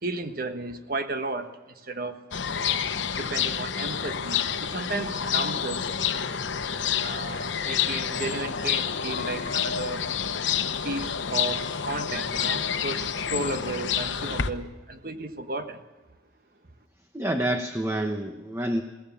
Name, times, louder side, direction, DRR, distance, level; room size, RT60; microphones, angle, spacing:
voice 1, 0.0-2.2 3.1-6.2 7.0-10.0 10.8-15.8, right 2 dB, 50° right, 8 dB, 1.3 m, -34 dB
sound 1, 2.3-14.5, left 7 dB, 85° left, 0.9 m, -28 dB
voice 2, 17.1-18.8, right 1 dB, 15° right, 5 dB, 1.0 m, -28 dB
22.0 x 17.0 x 7.1 m, 1.2 s
head